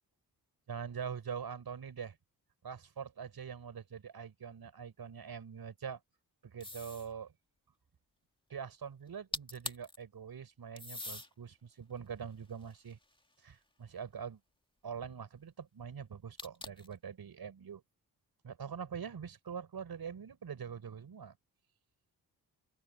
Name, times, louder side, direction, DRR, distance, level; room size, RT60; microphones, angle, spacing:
voice 1, 0.7-2.2 2.6-6.0 6.4-7.3 8.5-13.0 13.4-14.4 14.8-17.8 18.4-21.4, right 7 dB, 65° right, 5.7 m, -44 dB
sound 1, 6.6-7.1 9.1-9.2 9.3-10.0 10.8-11.3 12.0-13.4 16.4-16.9, left 1 dB, 10° left, 2.2 m, -43 dB
open air
cardioid pair, 65°, 40 cm